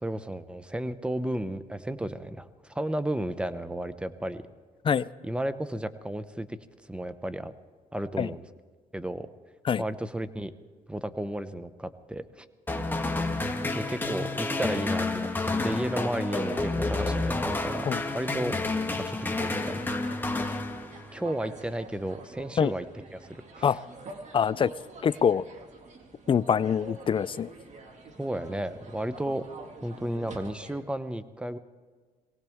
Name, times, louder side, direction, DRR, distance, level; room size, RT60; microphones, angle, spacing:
voice 1, 0.0-4.4 5.2-6.6 6.9-7.5 7.9-8.4 8.9-9.3 9.8-10.5 10.9-12.5 13.7-18.6 19.0-19.8 20.4-20.6 21.1-22.9 23.1-23.7 28.2-29.4 29.8-31.6, right 1 dB, 5° right, 12 dB, 0.8 m, -33 dB
sound 1, 12.7-21.3, left 2 dB, 15° left, 1.4 m, -30 dB
sound 2, 15.1-30.8, right 3 dB, 50° right, 2.0 m, -47 dB
voice 2, 24.3-24.7 25.0-25.5 26.3-27.5, left 7 dB, 35° left, 18 dB, 0.4 m, -24 dB
23.0 x 17.5 x 3.6 m, 1.5 s
cardioid pair, 90°, 16 cm